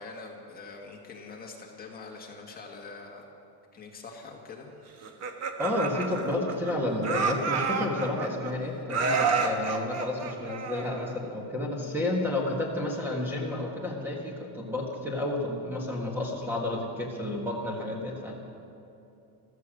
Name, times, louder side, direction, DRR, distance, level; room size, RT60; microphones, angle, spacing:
voice 1, 0.0-3.3 3.7-4.7 9.2-9.5, left 4 dB, 25° left, 0 dB, 1.7 m, -44 dB
Laughter, 5.0-6.7 7.0-8.5 8.9-11.2, right 5 dB, 40° right, 1.3 m, -29 dB
voice 2, 5.6-18.3, left 2 dB, 5° right, -1 dB, 1.5 m, -31 dB
15.5 x 14.0 x 6.3 m, 2.8 s
cardioid pair, 175°, 40 cm